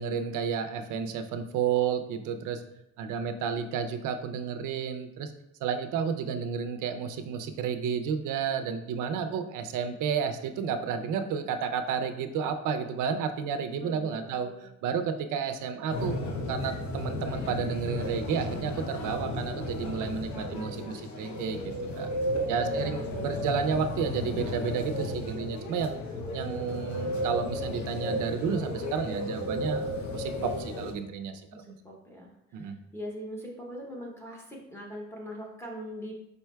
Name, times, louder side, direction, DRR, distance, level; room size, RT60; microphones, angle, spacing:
voice 1, 0.0-2.6 3.0-5.3 5.6-14.5 14.8-16.2 16.5-22.1 22.5-26.0 26.3-31.8 32.5-32.8, right 6 dB, 80° right, 8 dB, 0.5 m, -31 dB
voice 2, 13.8-14.7 22.6-23.8 31.5-36.1, equal, 10° left, -3 dB, 0.7 m, -42 dB
sound 1, 15.9-30.9, left 1 dB, 65° left, 0.8 m, -34 dB
5.1 x 4.5 x 2.2 m, 0.84 s
cardioid pair, 165°, 31 cm